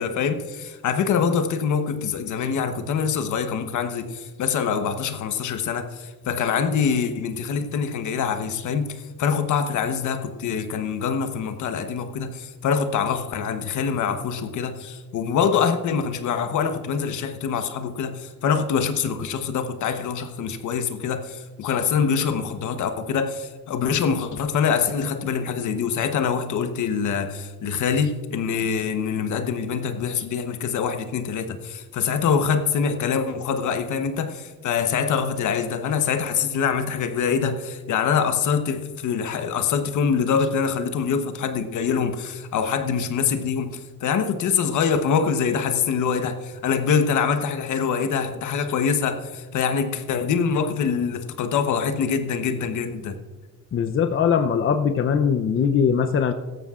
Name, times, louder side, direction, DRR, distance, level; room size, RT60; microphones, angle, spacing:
voice 1, 0.0-53.2, left 6 dB, 75° left, 8 dB, 1.1 m, -24 dB
voice 2, 53.7-56.3, left 7 dB, 45° left, 8 dB, 0.7 m, -21 dB
16.5 x 13.5 x 2.5 m, 1.4 s
cardioid pair, 90°, 30 cm